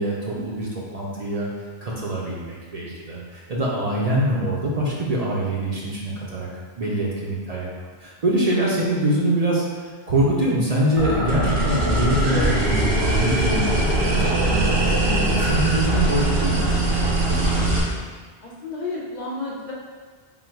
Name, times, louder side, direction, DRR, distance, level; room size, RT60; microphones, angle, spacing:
voice 1, 0.0-1.5 1.8-6.5 6.8-7.7 8.0-13.7 14.0-16.7, right 1 dB, 45° right, -5 dB, 0.6 m, -24 dB
sound 1, 11.0-17.8, right 1 dB, 85° right, 1.1 m, -21 dB
voice 2, 18.4-19.7, left 3 dB, 55° left, -4 dB, 0.6 m, -32 dB
3.7 x 2.2 x 4.4 m, 1.5 s
omnidirectional pair, 1.1 m